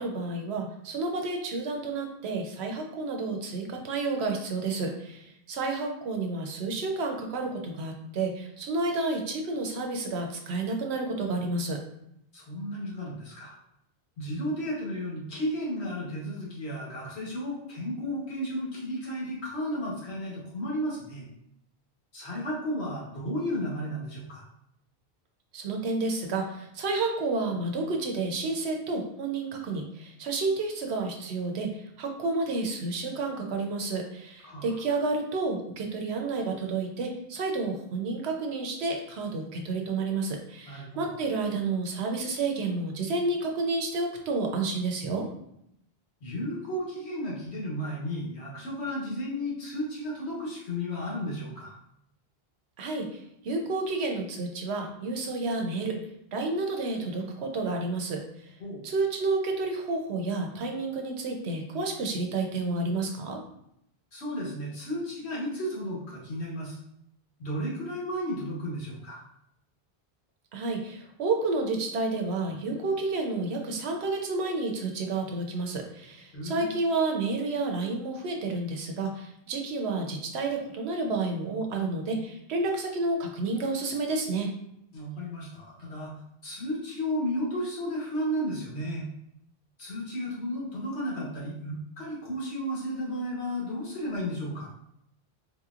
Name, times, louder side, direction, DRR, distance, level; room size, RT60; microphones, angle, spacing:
voice 1, 0.0-11.8 25.5-45.3 52.8-56.0 56.3-58.5 58.8-63.4 70.5-84.5, right 3 dB, 80° right, 2 dB, 0.9 m, -30 dB
voice 2, 12.3-13.6 14.2-21.3 22.1-24.4 34.4-34.8 40.7-41.1 46.2-51.8 58.6-58.8 64.1-66.8 67.4-69.2 76.3-76.7 84.9-86.1 86.4-89.1 89.8-94.7, equal, 80° left, -4 dB, 1.5 m, -33 dB
4.3 x 2.9 x 2.4 m, 0.77 s
omnidirectional pair, 1.1 m